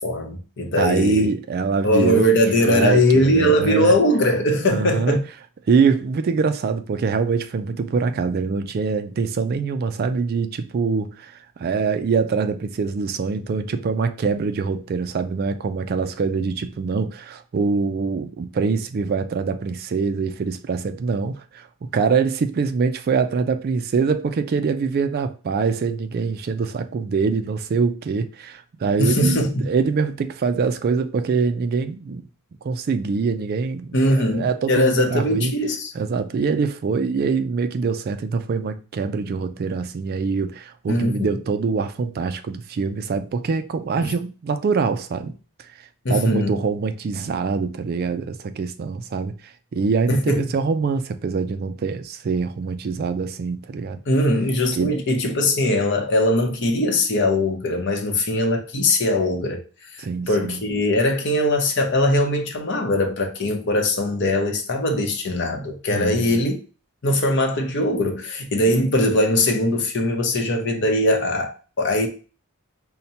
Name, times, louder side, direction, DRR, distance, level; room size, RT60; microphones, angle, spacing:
voice 1, 0.0-1.3 1.8-5.2 29.0-29.7 33.9-35.9 40.9-41.3 44.0-44.1 46.0-46.6 50.1-50.4 54.1-59.6 59.9-66.6 67.0-72.1, left 1 dB, 55° left, 0.7 m, -21 dB
voice 2, 0.7-2.4 2.6-3.9 4.7-5.2 5.7-21.7 21.9-32.2 32.6-35.5 35.9-45.4 46.1-54.0 54.7-55.0 60.0-60.6 65.9-66.4, right 5 dB, 45° right, 0.3 m, -24 dB
5.5 x 2.1 x 2.7 m
head